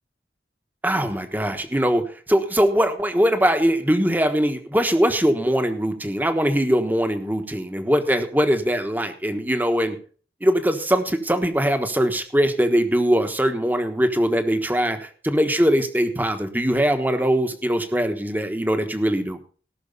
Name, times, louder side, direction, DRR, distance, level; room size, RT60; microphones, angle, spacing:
voice 1, 0.8-10.0 10.4-19.4, equal, 10° right, 7 dB, 1.2 m, -21 dB
18.0 x 6.3 x 5.4 m, 0.42 s
head